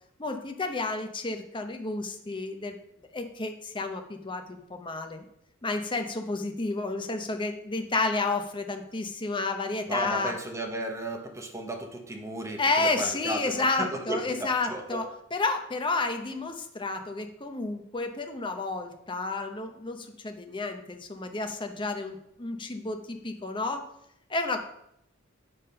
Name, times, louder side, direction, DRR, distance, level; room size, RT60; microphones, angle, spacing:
voice 1, 0.2-2.8 3.1-5.2 5.6-10.3 12.6-15.0 15.3-23.8 24.3-24.6, left 3 dB, 25° left, 5 dB, 0.7 m, -31 dB
voice 2, 9.9-15.0, right 1 dB, 15° right, 2 dB, 1.0 m, -34 dB
8.5 x 3.7 x 5.5 m, 0.75 s
head